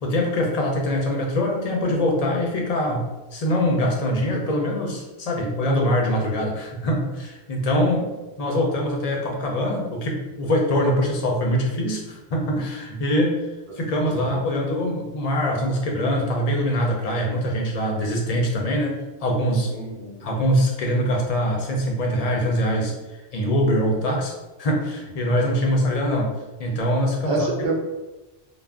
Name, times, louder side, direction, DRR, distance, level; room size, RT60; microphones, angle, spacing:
voice 1, 0.0-3.0 3.3-8.0 8.4-13.4 13.8-19.7 20.2-22.9 23.3-24.3 24.6-26.3 26.6-27.5, equal, 50° left, 0 dB, 0.5 m, -23 dB
voice 2, 19.7-20.3 27.2-27.7, right 2 dB, 75° right, -2 dB, 0.9 m, -28 dB
2.4 x 2.0 x 3.4 m, 1.1 s
omnidirectional pair, 1.1 m